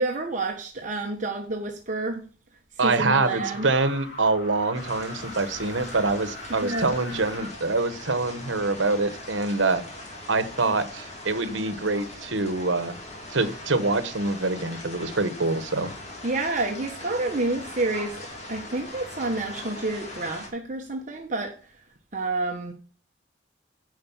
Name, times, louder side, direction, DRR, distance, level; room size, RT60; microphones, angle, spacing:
voice 1, 0.0-2.3 2.8-3.7 6.5-6.9 16.2-18.2 18.5-21.7 22.1-22.7, right 2 dB, 40° right, 1.2 m, -29 dB
voice 2, 2.8-9.8 10.3-13.0 13.3-15.9, right 3 dB, 80° right, 1.1 m, -25 dB
sound 1, 3.0-7.5, left 1 dB, 60° left, 2.9 m, -41 dB
sound 2, 4.7-20.5, left 1 dB, 35° left, 2.4 m, -41 dB
9.6 x 5.2 x 7.1 m
head